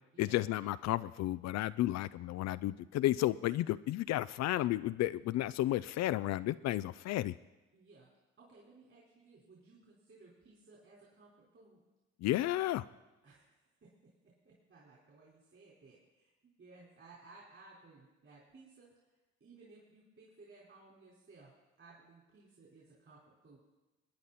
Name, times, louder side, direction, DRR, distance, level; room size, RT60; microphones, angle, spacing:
voice 1, 0.2-7.3 12.2-12.8, left 15 dB, 65° left, 15 dB, 0.4 m, -32 dB
voice 2, 7.7-8.1 8.4-11.8 13.2-13.5 13.8-16.3 16.6-19.1 19.4-21.5 21.8-23.6, right 3 dB, 45° right, -5 dB, 4.4 m, -59 dB
22.5 x 9.5 x 4.2 m, 1.1 s
supercardioid pair, 75°, 29 cm